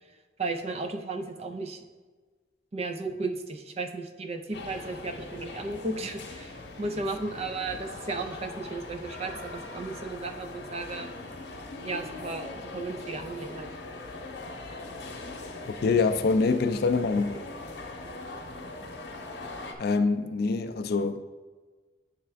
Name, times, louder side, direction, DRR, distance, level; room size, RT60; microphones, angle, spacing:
voice 1, 0.4-1.8 2.7-11.1 11.8-13.7, right 3 dB, 35° right, 0.5 m, -34 dB
sound 1, 4.5-19.7, left 2 dB, 70° left, 0.8 m, -41 dB
voice 2, 15.6-17.3 19.8-21.2, left 4 dB, 55° left, 0.3 m, -25 dB
9.5 x 3.4 x 3.4 m
head